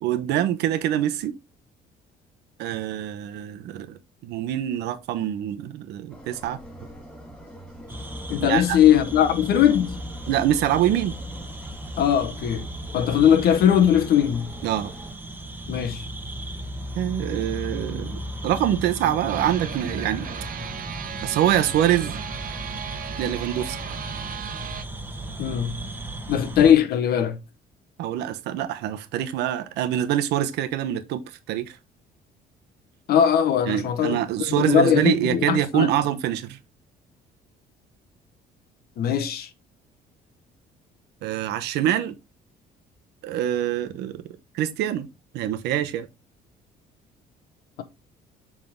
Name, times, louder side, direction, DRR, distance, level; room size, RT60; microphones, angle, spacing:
voice 1, 0.0-1.3 2.6-6.6 8.4-8.8 10.3-11.1 14.6-14.9 17.0-20.3 21.2-22.2 23.2-23.8 28.0-31.2 31.5-31.8 33.7-36.6 41.2-42.1 43.2-44.2 44.5-45.1 45.3-46.1, right 11 dB, 85° right, 1.0 m, -25 dB
sound 1, 6.1-15.1, equal, 10° left, 3.4 m, -44 dB
sound 2, 7.9-26.7, right 1 dB, 10° right, 1.2 m, -36 dB
voice 2, 8.3-10.0 12.0-12.7 12.9-14.5 15.7-16.0 25.4-25.7 26.3-27.4 33.1-35.9 39.0-39.5, left 9 dB, 65° left, 1.1 m, -20 dB
sound 3, 19.3-24.8, right 9 dB, 55° right, 1.0 m, -36 dB
7.3 x 3.7 x 3.6 m
cardioid pair, 110°, 17 cm